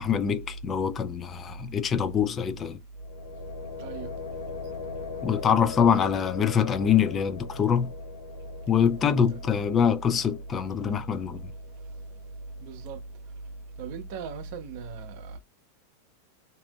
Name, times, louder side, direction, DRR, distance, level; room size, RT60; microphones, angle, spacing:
voice 1, 0.0-2.8 5.2-7.9 8.7-11.5, left 7 dB, 25° left, 0.3 m, -24 dB
sound 1, 3.0-12.8, left 6 dB, 60° left, 0.6 m, -41 dB
voice 2, 12.6-13.0 13.8-15.4, right 5 dB, 45° right, 0.6 m, -38 dB
2.7 x 2.5 x 2.3 m
figure-of-eight pair, 90°, 0 cm